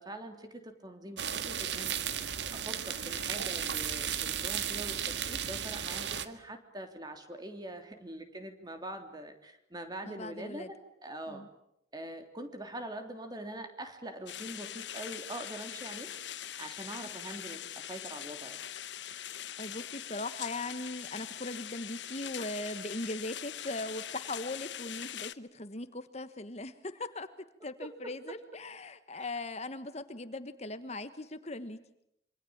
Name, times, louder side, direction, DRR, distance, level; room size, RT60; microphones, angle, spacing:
voice 1, 0.0-2.0 2.6-10.7 11.0-11.4 11.9-16.1 16.6-18.6 29.2-29.3, right 1 dB, 25° right, 7 dB, 3.3 m, -43 dB
sound 1, 1.2-6.3, right 8 dB, 85° right, 1.8 m, -34 dB
voice 2, 10.0-10.7 11.3-11.5 19.6-27.3 27.6-31.8, left 2 dB, 35° left, 11 dB, 1.4 m, -39 dB
sound 2, 14.3-25.3, left 11 dB, 90° left, 1.0 m, -42 dB
27.0 x 25.0 x 8.8 m, 0.76 s
head